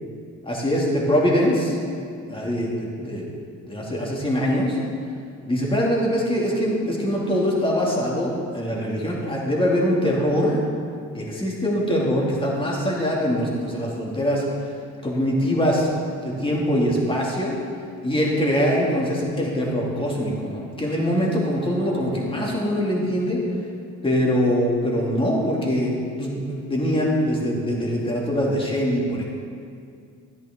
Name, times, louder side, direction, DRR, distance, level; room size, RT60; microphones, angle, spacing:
voice 1, 0.4-1.8 2.3-3.3 3.6-4.8 5.5-10.6 11.1-14.4 15.0-15.9 16.2-17.6 18.0-23.4 24.0-25.9 26.2-29.2, equal, 15° left, -3 dB, 2.5 m, -23 dB
12.0 x 10.0 x 3.8 m, 2.3 s
cardioid pair, 90°, 30 cm